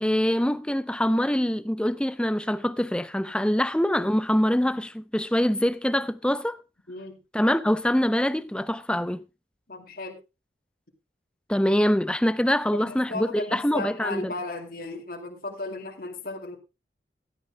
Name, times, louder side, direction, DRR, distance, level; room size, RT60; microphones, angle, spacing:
voice 1, 0.0-6.6 7.3-9.2 11.5-14.3, equal, 5° left, 0.5 m, -24 dB
voice 2, 6.9-7.2 9.7-10.2 12.7-16.6, left 2 dB, 50° left, 2.4 m, -35 dB
17.0 x 12.0 x 2.2 m
head